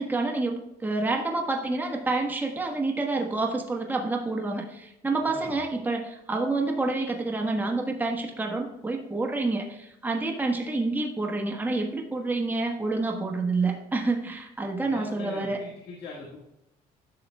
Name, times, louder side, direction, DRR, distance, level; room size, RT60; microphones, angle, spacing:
voice 1, 0.0-15.6, right 3 dB, 10° right, 1 dB, 1.2 m, -28 dB
voice 2, 5.2-5.6 14.8-16.4, left 4 dB, 70° left, -3 dB, 1.8 m, -42 dB
11.5 x 6.6 x 2.3 m, 0.89 s
cardioid pair, 110°, 17 cm